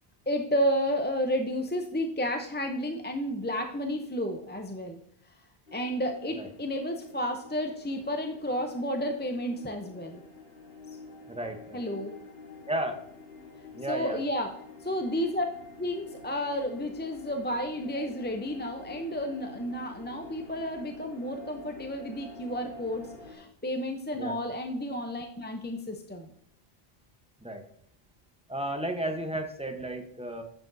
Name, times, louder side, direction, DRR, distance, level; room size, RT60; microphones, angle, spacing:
voice 1, 0.3-5.0 5.7-10.2 11.7-12.1 13.9-14.5 14.8-15.5 15.8-26.3, equal, 15° left, 4 dB, 0.5 m, -31 dB
sound 1, 5.7-23.4, left 3 dB, 65° left, 1.8 m, -48 dB
voice 2, 11.3-11.8 12.7-13.0 13.7-14.2 24.1-24.4 27.4-27.6 28.5-30.4, right 1 dB, 5° right, 4 dB, 0.9 m, -33 dB
9.9 x 7.4 x 2.6 m, 0.71 s
omnidirectional pair, 1.1 m